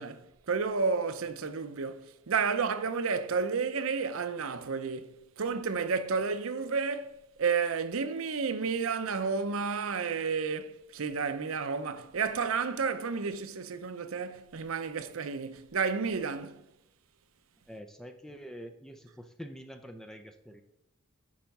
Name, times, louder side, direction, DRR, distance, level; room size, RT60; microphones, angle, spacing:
voice 1, 0.0-16.6, right 5 dB, 75° right, 0.6 m, -31 dB
voice 2, 17.7-20.6, equal, ahead, 0.5 m, -46 dB
10.0 x 4.6 x 5.3 m
head